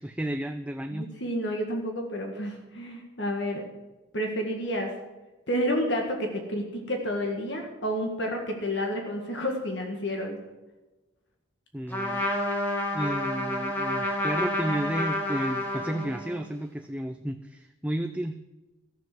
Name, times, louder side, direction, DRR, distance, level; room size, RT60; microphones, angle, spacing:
voice 1, 0.0-1.1 11.7-12.3 12.9-18.4, right 1 dB, 5° right, 7 dB, 0.4 m, -32 dB
voice 2, 0.9-3.6 4.1-4.9 5.5-10.4, equal, 60° left, 2 dB, 1.8 m, -30 dB
Trumpet, 11.9-16.5, left 1 dB, 10° left, 2.1 m, -29 dB
14.0 x 7.6 x 7.6 m, 1.1 s
head